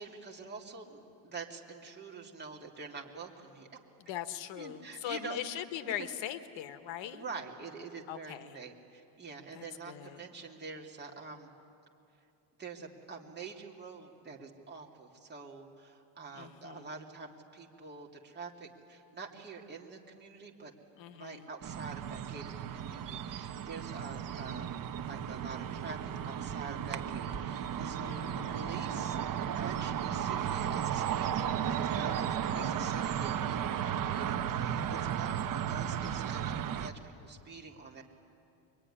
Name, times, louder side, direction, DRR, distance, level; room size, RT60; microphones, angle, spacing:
voice 1, 0.0-3.8 4.6-5.6 5.8-5.9 7.1-11.5 12.6-20.7 21.1-24.7 25.1-29.2 29.5-38.0, right 4 dB, 20° right, -1 dB, 2.5 m, -46 dB
voice 2, 4.0-7.2 8.1-8.6 9.5-10.2 16.3-16.9 21.0-21.5 28.0-28.8 32.5-33.0, left 11 dB, 60° left, 10 dB, 1.3 m, -41 dB
sound 1, 21.6-36.9, right 9 dB, 40° right, 1.0 m, -34 dB
24.0 x 23.0 x 10.0 m, 2.7 s
cardioid pair, 135°, 49 cm